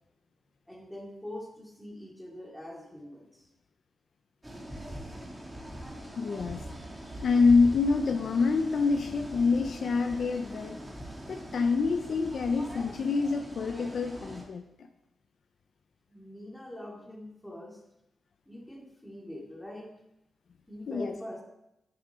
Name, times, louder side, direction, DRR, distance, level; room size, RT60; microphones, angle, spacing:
voice 1, 0.7-3.5 16.1-17.8 18.5-19.9 20.7-21.4, left 1 dB, 5° left, -1 dB, 2.7 m, -43 dB
sound 1, 4.4-14.4, equal, 15° right, 2.4 m, -42 dB
voice 2, 6.2-6.6 7.2-10.8 11.3-14.9 20.9-21.1, left 4 dB, 65° left, 6 dB, 0.7 m, -26 dB
11.0 x 9.6 x 3.8 m, 0.86 s
cardioid pair, 90°, 0 cm